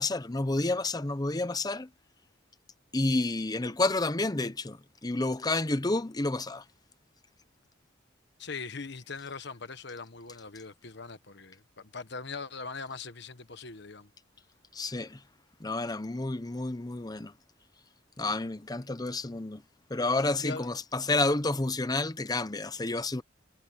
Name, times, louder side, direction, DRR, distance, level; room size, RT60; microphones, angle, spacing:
voice 1, 0.0-1.9 2.9-6.6 14.7-15.2 15.6-17.3 18.2-19.6 19.9-23.2, left 2 dB, 20° left, 0.8 m, -30 dB
voice 2, 8.4-14.1 18.8-18.9 20.4-20.7, left 4 dB, 60° left, 1.3 m, -41 dB
head